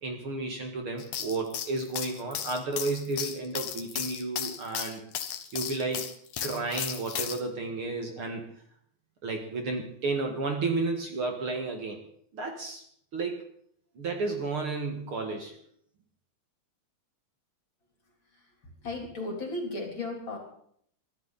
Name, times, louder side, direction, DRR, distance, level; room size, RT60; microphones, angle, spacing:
voice 1, 0.0-5.0 5.5-6.1 6.4-8.4 9.2-12.0 12.3-12.8 13.1-13.4 14.0-15.5, right 3 dB, 50° right, 3 dB, 2.5 m, -32 dB
sound 1, 1.0-7.4, left 9 dB, 85° left, 2.8 m, -35 dB
voice 2, 18.8-20.4, left 2 dB, 40° left, 1 dB, 4.2 m, -34 dB
23.5 x 13.5 x 4.2 m, 0.64 s
omnidirectional pair, 3.4 m